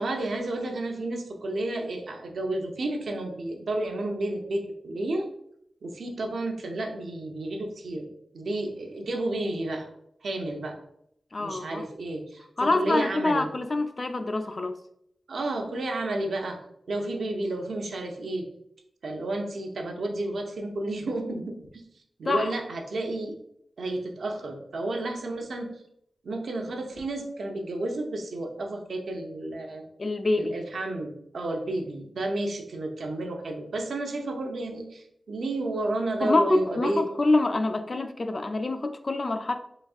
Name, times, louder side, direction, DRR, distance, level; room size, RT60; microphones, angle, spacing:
voice 1, 0.0-5.3 5.8-8.1 8.3-9.9 10.2-10.8 11.4-13.5 15.3-16.6 16.9-18.5 19.0-21.8 22.2-23.4 23.8-25.7 26.2-29.9 30.3-37.0, right 2 dB, 80° right, 0.6 m, -31 dB
voice 2, 11.3-11.9 12.6-14.7 22.3-22.5 30.0-30.6 36.2-39.5, left 2 dB, 40° left, 0.3 m, -26 dB
4.0 x 3.3 x 2.3 m
wide cardioid pair, 130°, 0 cm